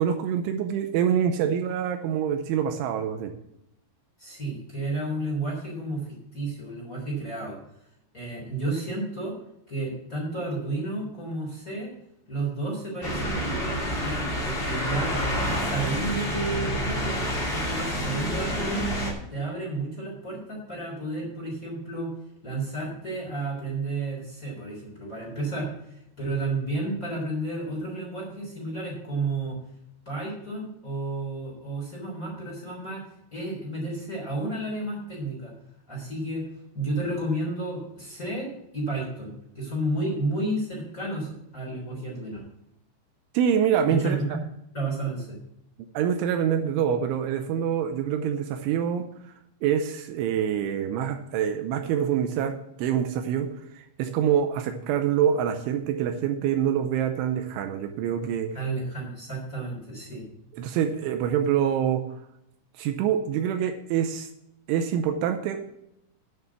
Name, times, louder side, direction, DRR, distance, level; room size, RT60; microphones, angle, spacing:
voice 1, 0.0-3.3 43.3-44.2 45.9-49.1 49.6-53.5 53.7-58.5 60.6-62.0 62.8-64.3 64.7-65.7, right 8 dB, 85° right, 7 dB, 3.0 m, -25 dB
voice 2, 4.2-7.6 8.1-9.3 9.7-11.9 12.3-15.2 15.6-18.9 19.3-22.1 22.4-29.6 30.0-33.0 33.3-35.5 35.9-36.5 36.7-42.4 43.8-44.4 44.7-45.4 58.5-60.2, right 2 dB, 20° left, -4 dB, 3.3 m, -32 dB
sound 1, 13.0-19.1, equal, 55° left, 0.6 m, -28 dB
9.2 x 6.7 x 7.0 m, 0.80 s
omnidirectional pair, 5.7 m